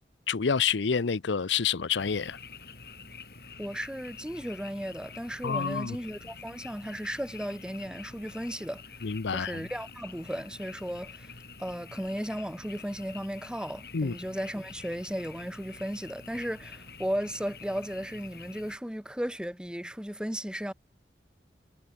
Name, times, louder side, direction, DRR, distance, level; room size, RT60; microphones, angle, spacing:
voice 1, 0.3-2.4 5.4-6.0 9.0-9.7 13.9-14.2, left 6 dB, 90° left, 0.7 m, -28 dB
Frog, 2.0-18.7, left 4 dB, 55° left, 4.9 m, -47 dB
voice 2, 3.6-8.8 9.3-11.3 11.6-20.7, equal, 5° right, 1.1 m, -35 dB
head